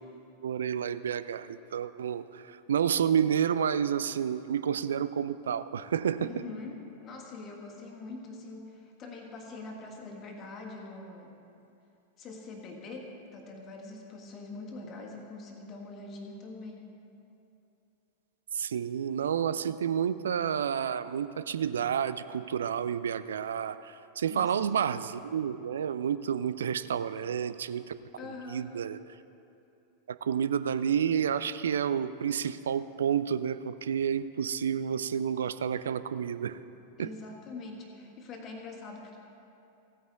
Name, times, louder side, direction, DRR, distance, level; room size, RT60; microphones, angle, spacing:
voice 1, 0.4-6.3 18.5-27.9 28.5-29.0 30.2-36.6 37.0-37.1, right 8 dB, 65° right, 14 dB, 0.3 m, -30 dB
voice 2, 6.2-11.3 12.2-16.9 24.3-24.6 28.2-28.8 37.0-39.2, left 3 dB, 30° left, 1 dB, 1.6 m, -43 dB
16.0 x 9.1 x 3.6 m, 2.7 s
figure-of-eight pair, 90°, 0 cm